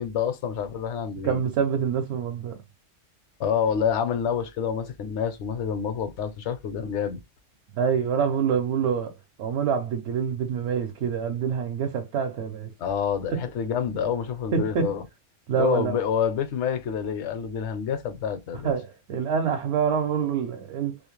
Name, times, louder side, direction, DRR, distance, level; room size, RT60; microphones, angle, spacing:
voice 1, 0.0-1.4 3.4-7.2 12.8-15.0 15.6-18.7, left 7 dB, 70° left, 0.9 m, -27 dB
voice 2, 1.2-2.6 7.7-12.7 13.3-13.4 14.5-14.9 15.5-15.9 18.6-21.0, right 7 dB, 65° right, 0.8 m, -26 dB
2.4 x 2.1 x 3.0 m
omnidirectional pair, 1.3 m